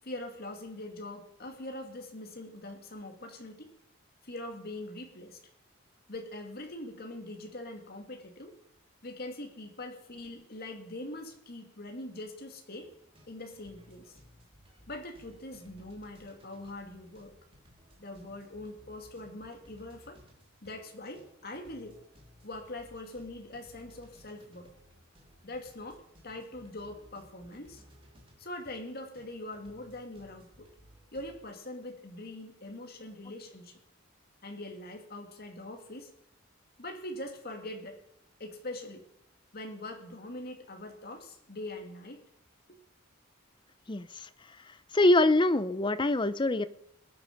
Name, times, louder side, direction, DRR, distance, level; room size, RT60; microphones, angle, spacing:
voice 1, 0.0-3.7 4.2-5.4 6.1-8.5 9.0-12.9 13.3-14.2 14.9-17.3 18.0-20.2 20.6-22.0 22.4-24.7 25.4-27.8 28.4-30.7 31.1-33.8 34.4-36.1 36.8-38.0 38.4-39.0 39.5-42.2, left 1 dB, 50° left, 3 dB, 2.3 m, -43 dB
sound 1, 12.8-31.5, equal, 25° right, 3.0 m, -59 dB
voice 2, 43.9-44.3 44.9-46.7, left 2 dB, 25° left, 14 dB, 0.6 m, -24 dB
21.0 x 9.1 x 5.3 m, 0.76 s
head